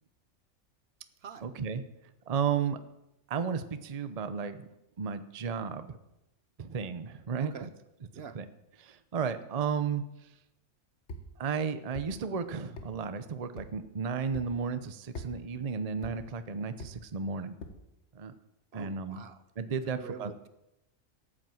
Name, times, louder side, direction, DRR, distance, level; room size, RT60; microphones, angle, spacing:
voice 1, 1.4-1.9 2.3-2.8 3.3-4.7 5.0-6.0 6.6-7.7 8.3-8.5 8.8-10.0 11.4-17.6 18.1-18.3 18.7-19.2 19.6-20.3, right 6 dB, 35° right, 11 dB, 0.7 m, -33 dB
voice 2, 7.4-7.7 8.1-8.4 18.7-19.4 19.8-20.5, right 6 dB, 60° right, 12 dB, 1.0 m, -45 dB
sound 1, 11.1-11.3 11.9-12.1 12.8-12.9 13.6-13.7 14.3-14.5 15.1-15.3 16.0-16.2 16.8-16.9 17.6-17.8, left 1 dB, 60° left, 1.7 m, -41 dB
13.5 x 8.7 x 7.7 m, 0.90 s
omnidirectional pair, 1.3 m